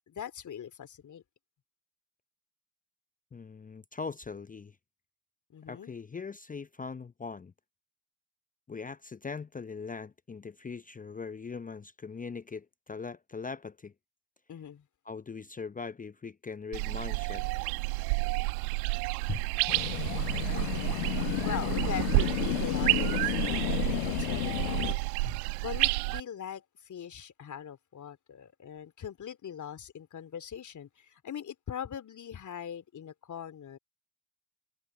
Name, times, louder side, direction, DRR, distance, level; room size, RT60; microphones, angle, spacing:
voice 1, 0.1-1.2 5.5-5.9 14.5-14.9 20.5-21.1 21.4-25.1 25.6-33.8, left 9 dB, 40° left, 3.3 m, -41 dB
voice 2, 3.3-4.8 5.7-7.5 8.7-13.9 15.1-17.4 19.3-19.5 25.2-25.4, left 5 dB, 15° left, 0.9 m, -40 dB
sound 1, 16.7-26.2, right 31 dB, 65° right, 1.7 m, -30 dB
sound 2, 19.7-24.9, left 23 dB, 70° left, 1.2 m, -32 dB
figure-of-eight pair, 55°, 47 cm